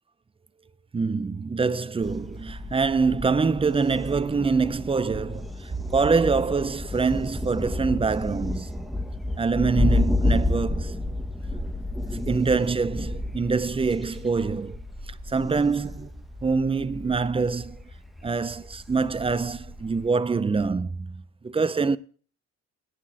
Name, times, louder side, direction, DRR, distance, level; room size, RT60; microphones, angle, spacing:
voice 1, 0.9-8.9 9.4-11.0 12.1-14.8 15.3-16.1 16.4-17.8 18.2-22.0, right 4 dB, 20° right, 0.5 m, -25 dB
Thunder, 2.0-20.1, left 2 dB, ahead, 1.0 m, -31 dB
9.9 x 6.0 x 7.7 m
cardioid pair, 90°, 30 cm